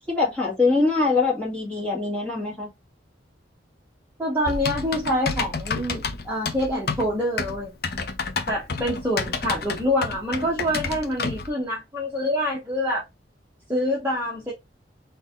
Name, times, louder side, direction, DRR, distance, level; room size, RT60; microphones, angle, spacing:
voice 1, 0.1-2.7, left 3 dB, 5° left, 1.7 m, -23 dB
voice 2, 4.2-7.7 8.5-13.0 13.7-14.5, equal, 10° right, 1.0 m, -26 dB
Typing, 4.5-11.5, left 4 dB, 50° left, 0.6 m, -30 dB
4.0 x 2.7 x 3.6 m
head